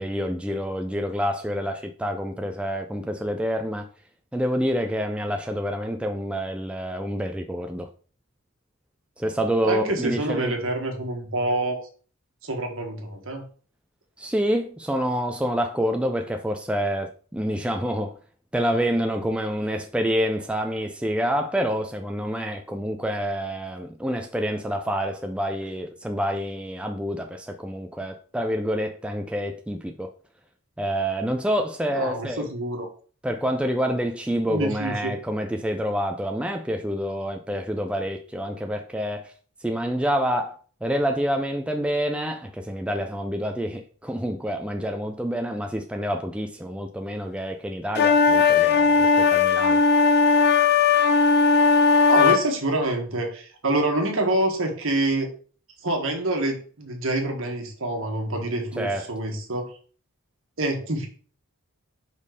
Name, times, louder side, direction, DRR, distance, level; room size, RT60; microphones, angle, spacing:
voice 1, 0.0-3.9 4.3-7.9 9.2-10.5 14.2-18.2 18.5-30.1 30.8-32.5 33.2-39.3 39.6-49.8 58.8-59.1, equal, 5° right, 0.3 m, -27 dB
voice 2, 9.6-11.8 12.4-13.4 31.9-32.9 34.5-35.1 52.1-55.3 55.8-59.7 60.6-61.1, right 1 dB, 60° right, 1.6 m, -26 dB
sound 1, 47.9-52.4, left 5 dB, 45° left, 0.6 m, -18 dB
5.3 x 4.4 x 4.8 m
head